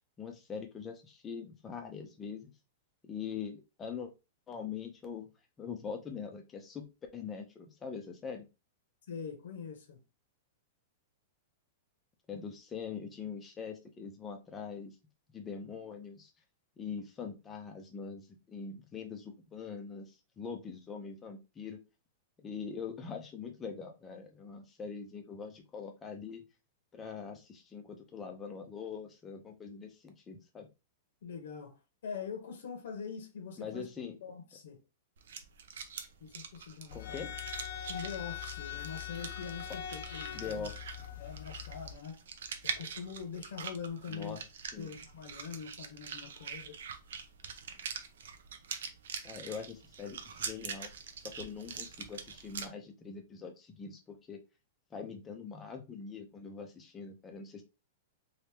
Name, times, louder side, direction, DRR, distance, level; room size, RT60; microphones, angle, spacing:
voice 1, 0.2-2.5 3.0-4.1 4.5-5.3 5.6-6.8 7.1-8.5 12.3-14.9 15.3-16.3 16.8-21.8 22.4-26.4 26.9-30.7 33.6-34.2 36.9-37.3 40.3-40.7 44.1-44.4 44.7-44.9 49.2-50.9 51.2-54.4 54.9-57.6, left 6 dB, 15° left, 0.6 m, -43 dB
voice 2, 9.1-10.0 31.2-33.9 34.2-34.8 36.2-37.2 37.9-40.7 41.2-42.2 42.6-44.4 44.8-46.8, left 6 dB, 70° left, 1.0 m, -43 dB
sound 1, 35.2-52.7, right 6 dB, 80° right, 0.6 m, -44 dB
sound 2, 36.9-41.9, left 10 dB, 55° left, 0.6 m, -42 dB
3.0 x 2.7 x 3.4 m
supercardioid pair, 175°, 0 cm